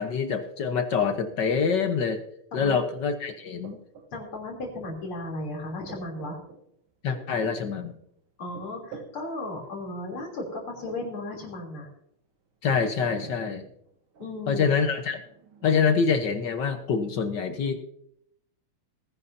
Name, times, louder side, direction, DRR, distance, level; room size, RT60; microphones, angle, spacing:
voice 1, 0.0-2.2 2.5-3.8 7.0-8.0 12.6-13.7 14.5-15.2 15.6-17.8, left 6 dB, 60° left, 7 dB, 1.7 m, -25 dB
sound 1, 3.6-4.1 5.0-5.2 5.4-6.6 7.1-8.0 8.5-9.2 9.5-9.7 10.5-11.1 11.5-11.7 12.7-13.5 13.9-17.1, right 5 dB, 75° right, 2.2 m, -47 dB
voice 2, 4.1-6.4 8.4-11.9 14.2-14.7, left 2 dB, 90° left, 0 dB, 4.3 m, -35 dB
19.5 x 11.0 x 2.8 m, 0.71 s
omnidirectional pair, 2.3 m